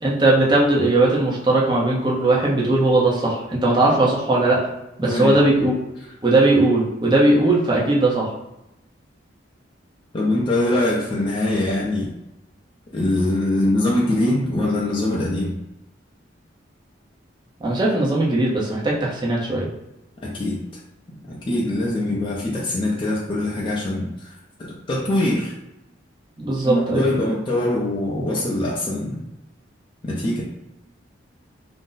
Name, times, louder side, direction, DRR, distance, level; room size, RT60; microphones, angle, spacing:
voice 1, 0.0-4.6 5.0-5.7 6.2-8.3 17.6-19.7 22.1-22.2 26.4-27.1, right 2 dB, 25° right, -5 dB, 0.7 m, -19 dB
voice 2, 5.0-5.3 10.1-12.1 12.9-15.6 20.2-20.6 21.3-25.6 26.6-29.2 30.0-30.4, left 1 dB, 25° left, -5 dB, 0.5 m, -23 dB
2.5 x 2.0 x 3.8 m, 0.90 s
head